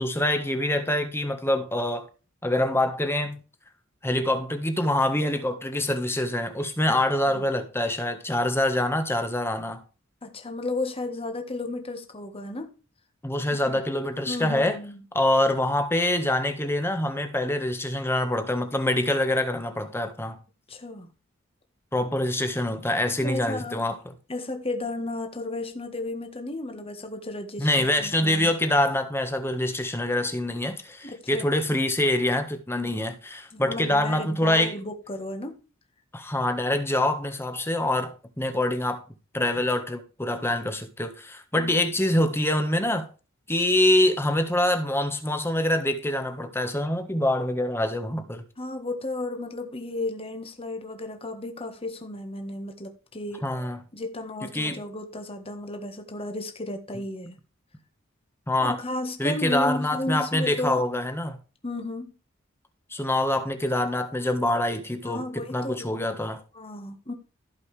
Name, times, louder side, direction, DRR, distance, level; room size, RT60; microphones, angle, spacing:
voice 1, 0.0-2.1 2.4-3.4 4.0-9.8 13.2-14.8 15.1-20.4 21.9-24.1 27.6-34.7 36.1-39.0 39.3-43.1 43.5-48.4 53.4-53.8 54.5-54.8 58.5-58.8 59.2-61.4 62.9-66.4, left 1 dB, 10° left, 1.5 m, -25 dB
voice 2, 10.2-12.7 13.5-13.8 14.3-15.0 20.7-21.1 23.2-23.8 24.3-28.5 31.0-31.5 32.7-33.1 33.5-35.6 41.6-41.7 48.6-53.5 53.9-57.4 58.6-60.8 61.6-62.1 65.0-65.9 66.5-67.1, left 2 dB, 30° left, 1.6 m, -33 dB
16.0 x 5.5 x 3.4 m
head